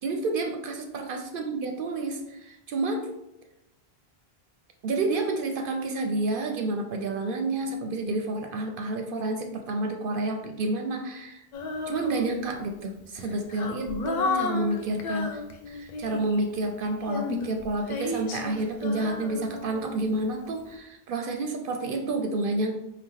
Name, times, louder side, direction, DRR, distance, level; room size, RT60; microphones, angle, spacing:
voice 1, 0.0-3.1 4.8-11.4 11.9-15.4 15.7-22.7, right 2 dB, 65° right, 4 dB, 0.7 m, -29 dB
Female singing, 11.5-12.6 13.2-16.4 17.0-20.2, left 3 dB, 55° left, 0.6 m, -33 dB
4.6 x 2.4 x 3.6 m, 0.87 s
omnidirectional pair, 1.0 m